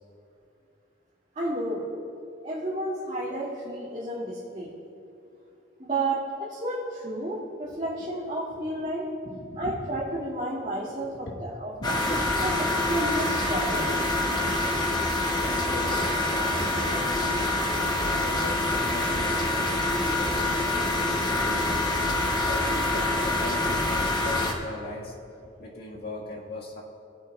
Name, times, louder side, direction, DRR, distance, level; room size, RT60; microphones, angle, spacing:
voice 1, 1.4-1.9 2.4-4.7 5.8-9.0 9.6-12.0 12.4-14.2, right 1 dB, 35° right, -11 dB, 2.2 m, -31 dB
voice 2, 9.2-9.7 10.9-11.0 11.3-11.4 11.8-12.2 15.4-17.2 18.0-20.7 21.3-21.9 22.5-25.2 25.6-26.8, left 1 dB, 60° left, -3 dB, 1.8 m, -39 dB
sound 1, 11.8-24.5, left 2 dB, 25° left, 0.9 m, -26 dB
19.5 x 8.5 x 2.4 m, 2.6 s
head